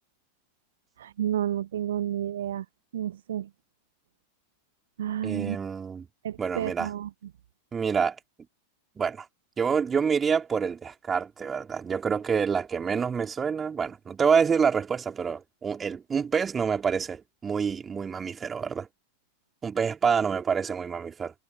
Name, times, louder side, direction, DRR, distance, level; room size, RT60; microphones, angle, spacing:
voice 1, 1.0-2.6 2.9-3.5 5.0-5.6 6.2-7.1, right 10 dB, 60° right, 1.1 m, -30 dB
voice 2, 5.2-6.1 6.4-6.9 7.7-8.2 9.0-9.3 9.6-18.9 19.6-21.3, right 6 dB, 20° right, 4.1 m, -27 dB
figure-of-eight pair, 90°, 0 cm